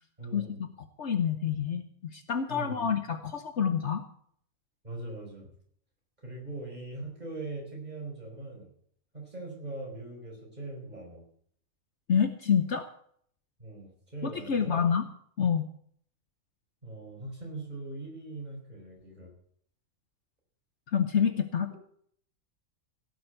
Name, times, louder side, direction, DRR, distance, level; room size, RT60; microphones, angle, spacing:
voice 1, 0.2-0.6 2.5-2.9 4.8-5.5 6.2-8.7 9.1-11.2 13.6-14.9 16.8-19.3, right 2 dB, 30° right, 0 dB, 4.9 m, -41 dB
voice 2, 1.0-1.9 2.1-4.0 12.1-12.9 14.2-15.0 15.4-15.6 20.9-21.7, left 7 dB, 55° left, 9 dB, 1.1 m, -27 dB
17.0 x 7.0 x 7.8 m, 0.62 s
omnidirectional pair, 1.5 m